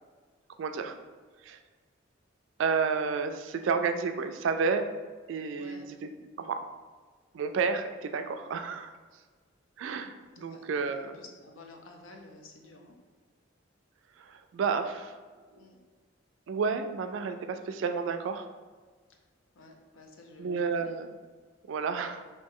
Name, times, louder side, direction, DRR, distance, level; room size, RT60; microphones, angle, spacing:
voice 1, 0.6-1.0 1.4-1.6 2.6-4.8 5.3-6.1 6.4-6.6 7.3-8.9 9.8-11.2 14.2-15.1 16.5-18.5 20.4-21.1 21.7-22.2, right 5 dB, 70° right, 8 dB, 0.3 m, -31 dB
voice 2, 5.6-5.9 10.4-13.0 15.5-15.8 19.1-19.2 19.5-21.0, left 2 dB, 80° left, 2 dB, 0.6 m, -52 dB
3.1 x 2.7 x 3.6 m, 1.4 s
head